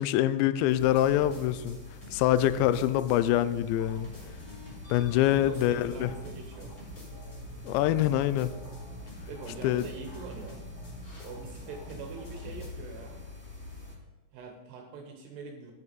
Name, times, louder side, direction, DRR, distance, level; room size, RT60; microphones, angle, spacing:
voice 1, 0.0-1.8 2.1-4.1 4.9-6.1 7.6-8.5 9.6-9.8, left 12 dB, 90° left, 13 dB, 2.5 m, -25 dB
sound 1, 0.6-3.4 3.8-12.7, right 1 dB, 35° left, 3.5 m, -47 dB
sound 2, 0.8-13.9, left 3 dB, 10° left, 1.6 m, -46 dB
voice 2, 5.3-6.7 9.3-10.6 11.2-13.3 14.3-15.7, right 4 dB, 75° right, 3 dB, 2.7 m, -44 dB
11.0 x 10.0 x 4.1 m, 1.3 s
omnidirectional pair, 5.7 m